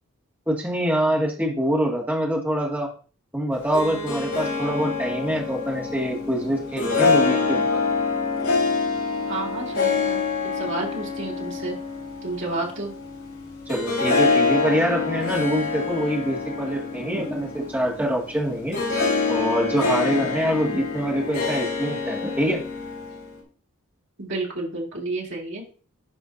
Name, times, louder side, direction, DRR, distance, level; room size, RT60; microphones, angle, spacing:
voice 1, 0.5-2.9 3.3-7.8 13.7-18.8 19.3-22.6, equal, 10° right, -4 dB, 2.0 m, -25 dB
Harp, 3.5-23.4, left 4 dB, 80° left, 3.2 m, -26 dB
voice 2, 9.3-10.2 10.6-11.8 12.2-12.9 24.2-25.6, right 2 dB, 55° right, -3 dB, 2.5 m, -30 dB
10.5 x 5.0 x 2.6 m, 0.39 s
head